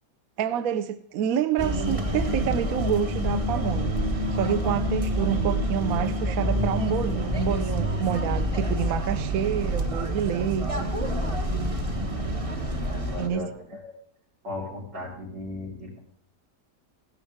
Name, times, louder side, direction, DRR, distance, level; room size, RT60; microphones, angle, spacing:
voice 1, 0.4-3.9 4.3-10.9 13.2-13.5, right 9 dB, 65° right, 1.0 m, -28 dB
sound 1, 1.6-13.3, equal, 25° right, 0.9 m, -27 dB
voice 2, 12.8-14.0 14.4-16.0, left 2 dB, 85° right, 5.3 m, -37 dB
16.0 x 12.0 x 3.5 m
omnidirectional pair, 1.9 m